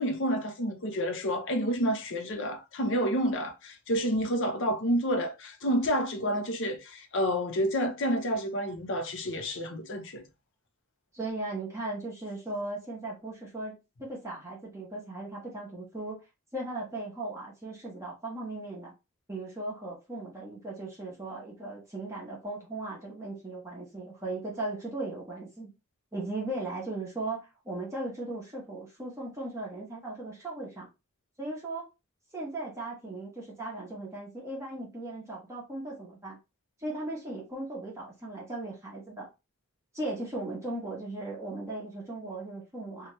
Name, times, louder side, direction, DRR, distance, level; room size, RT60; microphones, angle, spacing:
voice 1, 0.0-10.2, equal, 55° left, 0.6 m, -29 dB
voice 2, 11.1-16.2 16.5-18.9 19.3-25.7 26.1-30.9 31.4-31.9 32.3-36.4 36.8-39.3 39.9-43.1, right 2 dB, 15° right, 0.9 m, -37 dB
2.8 x 2.3 x 3.0 m
head